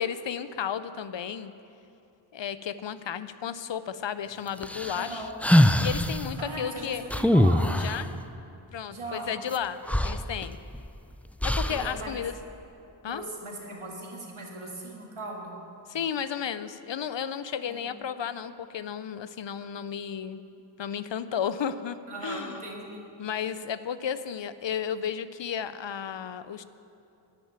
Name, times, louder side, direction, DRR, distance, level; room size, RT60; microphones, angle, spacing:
voice 1, 0.0-1.5 2.3-5.2 5.8-7.0 7.7-8.1 8.7-10.6 11.4-12.3 13.0-13.2 15.9-20.4 20.8-22.6 23.2-26.6, left 8 dB, 65° left, 14 dB, 0.6 m, -33 dB
sound 1, 4.6-6.2 7.1-8.0 9.5-9.6 9.9-10.9 11.4-11.9, left 1 dB, 5° left, 0.3 m, -23 dB
voice 2, 5.0-5.3 6.4-7.7 8.9-9.3 11.7-12.2 13.0-15.6 17.7-17.8 22.1-23.0, right 1 dB, 85° right, -1 dB, 1.8 m, -38 dB
10.0 x 6.6 x 8.8 m, 2.8 s
wide cardioid pair, 50°, 49 cm